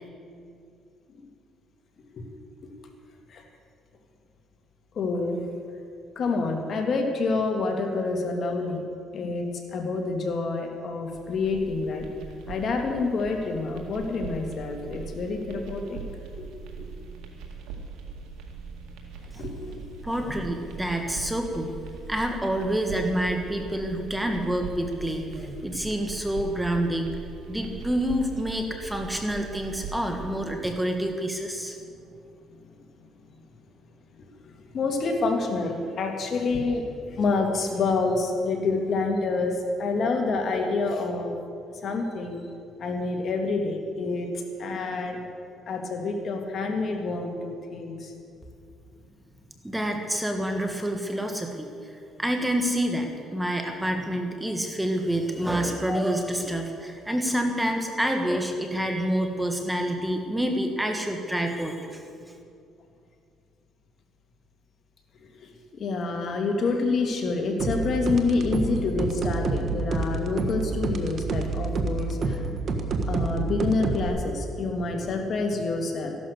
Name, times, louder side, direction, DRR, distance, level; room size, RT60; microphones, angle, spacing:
voice 1, 4.9-5.4 6.2-8.8 9.1-12.1 12.5-16.0 16.4-16.5 16.8-16.9 19.4-19.8 29.2-29.3 31.8-31.9 34.7-41.4 41.8-42.4 42.8-44.3 44.6-45.2 45.7-48.1 65.4-72.4 73.1-76.1, left 3 dB, 50° left, 3 dB, 2.3 m, -27 dB
sound 1, 11.1-30.3, right 4 dB, 85° right, 2.0 m, -41 dB
voice 2, 20.0-21.7 22.1-27.2 27.5-31.8 49.6-62.0, right 1 dB, 5° right, 3 dB, 1.5 m, -28 dB
sound 2, 67.6-74.1, right 3 dB, 50° right, 1.3 m, -28 dB
14.5 x 11.5 x 6.7 m, 2.4 s
cardioid pair, 100°, 0 cm